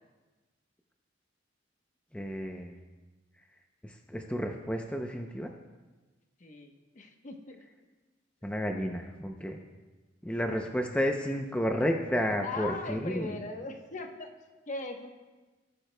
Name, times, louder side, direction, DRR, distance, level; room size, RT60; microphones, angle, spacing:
voice 1, 2.1-2.8 3.8-5.5 8.4-9.6 10.2-13.4, equal, 5° left, 3 dB, 0.5 m, -31 dB
voice 2, 6.4-7.6 12.4-14.3 14.7-15.1, left 3 dB, 45° left, 4 dB, 1.0 m, -39 dB
18.5 x 9.0 x 2.2 m, 1.2 s
head